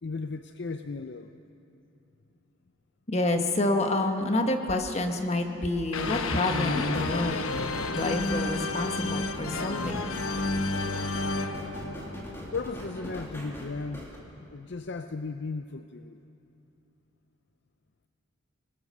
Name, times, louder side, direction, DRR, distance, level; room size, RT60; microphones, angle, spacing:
voice 1, 0.0-1.3 12.5-14.2 14.5-16.2, left 4 dB, 55° left, 8 dB, 0.6 m, -36 dB
voice 2, 3.1-7.4 7.9-10.1, left 2 dB, 30° left, 4 dB, 1.4 m, -28 dB
sound 1, 5.9-12.9, left 3 dB, 80° left, 1.0 m, -31 dB
sound 2, 6.0-14.2, equal, 10° left, 2.7 m, -42 dB
25.0 x 19.5 x 6.8 m, 2.8 s
head